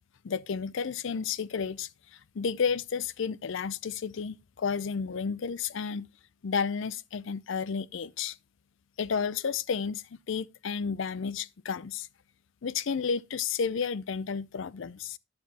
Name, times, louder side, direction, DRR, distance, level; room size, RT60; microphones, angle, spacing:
voice 1, 0.2-6.1 6.4-8.4 9.0-12.1 12.6-15.2, left 6 dB, 60° left, 0.4 m, -32 dB
10.5 x 7.3 x 2.8 m
head